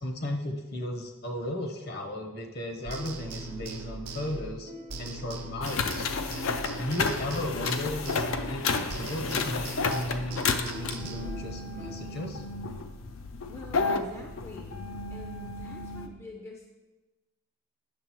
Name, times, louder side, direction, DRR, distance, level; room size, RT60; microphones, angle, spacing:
voice 1, 0.0-4.7 5.0-6.1 6.8-12.4, left 1 dB, 45° left, 3 dB, 0.8 m, -35 dB
sound 1, 2.9-6.8 7.3-12.1, left 1 dB, 35° right, 0.7 m, -49 dB
sound 2, 2.9-8.6 8.9-11.3, right 2 dB, 85° right, 0.7 m, -40 dB
sound 3, 5.6-16.1, left 4 dB, 65° left, 0.5 m, -32 dB
voice 2, 13.5-14.8 15.1-16.7, left 2 dB, 10° left, 0 dB, 0.5 m, -46 dB
8.6 x 6.5 x 3.0 m, 1.1 s
head